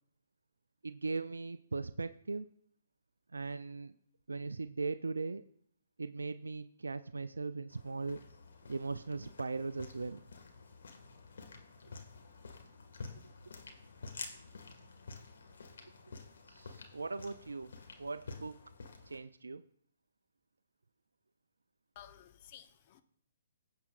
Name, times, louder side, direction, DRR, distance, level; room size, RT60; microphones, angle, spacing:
voice 1, 0.8-2.5 3.3-3.9 4.3-5.4 6.0-8.2 8.7-10.2 16.5-17.7 18.0-18.6 19.1-19.6, right 3 dB, 85° right, 0.3 m, -39 dB
sound 1, 7.7-19.2, left 4 dB, 70° left, 1.6 m, -50 dB
voice 2, 21.9-23.0, left 10 dB, 40° left, 0.8 m, -54 dB
17.5 x 7.3 x 2.4 m
hypercardioid pair, 135°, 0 cm